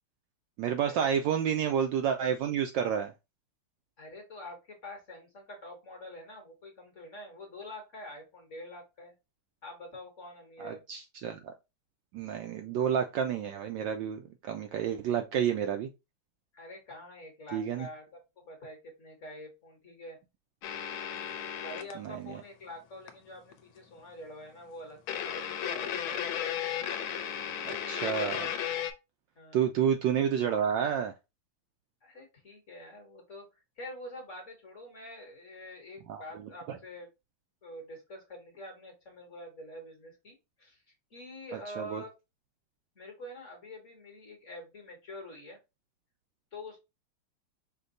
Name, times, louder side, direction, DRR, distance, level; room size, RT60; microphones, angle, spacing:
voice 1, 0.6-3.1 10.6-11.5 12.1-15.9 17.5-17.9 22.0-22.4 27.7-28.5 29.5-31.1 36.1-36.2 36.7-36.8 41.8-42.0, right 8 dB, 75° right, 1.1 m, -30 dB
voice 2, 4.0-9.1 9.6-10.8 16.5-18.0 18.4-20.2 21.6-26.3 26.6-26.8 29.4-29.7 32.0-37.1 37.6-40.8 41.1-42.1 42.9-45.6 46.5-46.8, left 1 dB, 40° left, 1.2 m, -46 dB
sound 1, 20.6-21.9 23.1-23.2 23.5-23.6 25.1-28.9, left 9 dB, 75° left, 1.4 m, -34 dB
5.3 x 2.2 x 3.9 m
omnidirectional pair, 2.4 m